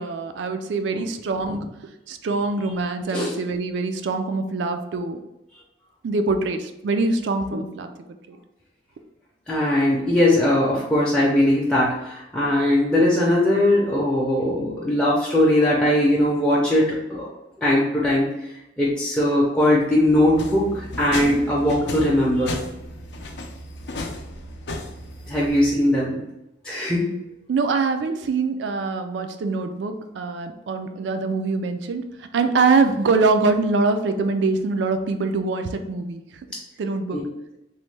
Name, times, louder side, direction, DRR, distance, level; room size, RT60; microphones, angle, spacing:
voice 1, 0.0-1.6 2.1-5.2 6.0-7.9 8.3-8.4 27.5-36.2 36.8-37.2, right 3 dB, 75° right, 7 dB, 0.3 m, -24 dB
voice 2, 9.5-17.3 17.6-18.3 18.8-22.6 25.3-26.2 26.6-27.1 37.1-37.2, left 1 dB, 5° left, -6 dB, 0.5 m, -20 dB
sound 1, 20.0-25.7, left 2 dB, 70° left, 0.4 m, -34 dB
3.1 x 2.1 x 3.2 m, 0.89 s
head